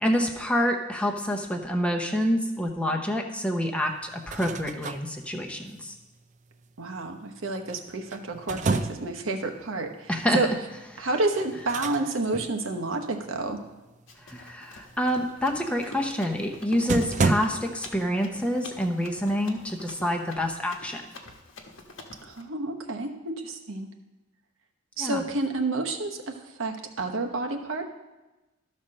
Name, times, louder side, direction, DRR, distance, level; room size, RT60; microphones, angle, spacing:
voice 1, 0.0-5.9 10.1-10.4 11.0-11.1 14.2-21.0 25.0-25.2, equal, 5° left, 2 dB, 0.8 m, -27 dB
sound 1, 4.1-5.0 7.7-9.2 11.3-12.0 12.3-12.5 16.3-16.4 16.9-17.4, right 3 dB, 35° right, 0.4 m, -28 dB
voice 2, 6.8-10.5 11.0-13.6 22.2-23.9 25.0-27.8, right 2 dB, 75° right, 4 dB, 1.0 m, -30 dB
Run, 14.1-22.4, left 2 dB, 75° left, 1.1 m, -47 dB
12.5 x 4.3 x 6.4 m, 1.1 s
head